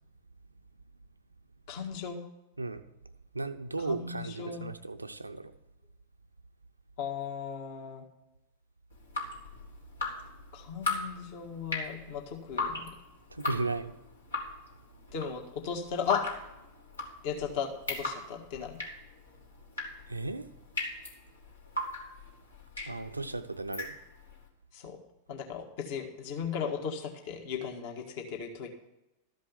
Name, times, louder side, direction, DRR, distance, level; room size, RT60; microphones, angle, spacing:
voice 1, 1.7-2.2 3.8-4.7 7.0-8.0 10.5-12.9 15.1-16.2 17.2-18.8 24.7-25.0 25.3-28.7, left 7 dB, 50° left, 3 dB, 1.6 m, -36 dB
voice 2, 3.3-5.5 13.3-13.9 20.1-20.5 22.9-24.0, right 3 dB, 85° right, 10 dB, 0.6 m, -35 dB
Drip, 8.9-24.4, left 2 dB, 75° left, 2.2 m, -38 dB
13.5 x 5.3 x 7.3 m, 0.93 s
figure-of-eight pair, 90°, 0 cm